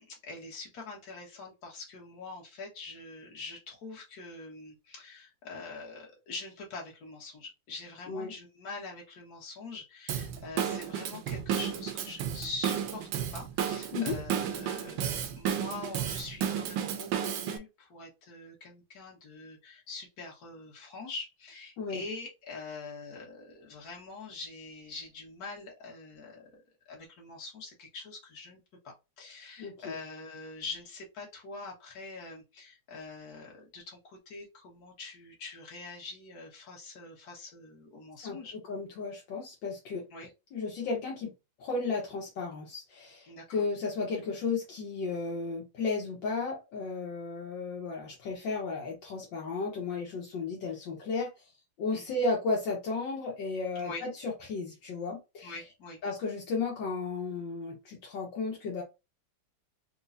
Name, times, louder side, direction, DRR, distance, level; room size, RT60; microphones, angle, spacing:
voice 1, 0.0-26.6 26.9-38.6 40.1-40.3 43.3-43.6 51.9-52.2 53.8-54.0 55.4-56.0, left 3 dB, 55° left, 1.8 m, -44 dB
Drum kit / Drum, 10.1-17.6, right 9 dB, 80° right, 1.3 m, -33 dB
voice 2, 29.6-29.9 38.2-38.4 38.7-40.1 40.5-41.3 41.6-51.3 51.8-55.5 56.0-58.8, left 4 dB, 75° left, 1.6 m, -34 dB
4.5 x 2.3 x 2.6 m
omnidirectional pair, 2.1 m